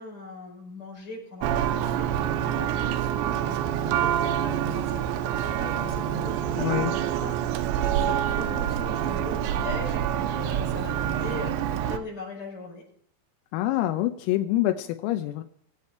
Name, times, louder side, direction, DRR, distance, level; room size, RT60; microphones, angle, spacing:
voice 1, 0.0-12.8, left 3 dB, 20° left, -4 dB, 5.9 m, -41 dB
Church bell, 1.4-12.0, right 10 dB, 90° right, 2.5 m, -27 dB
voice 2, 6.6-7.0 13.5-15.4, left 14 dB, 85° left, 8 dB, 3.5 m, -26 dB
20.5 x 8.2 x 4.2 m, 0.66 s
omnidirectional pair, 5.9 m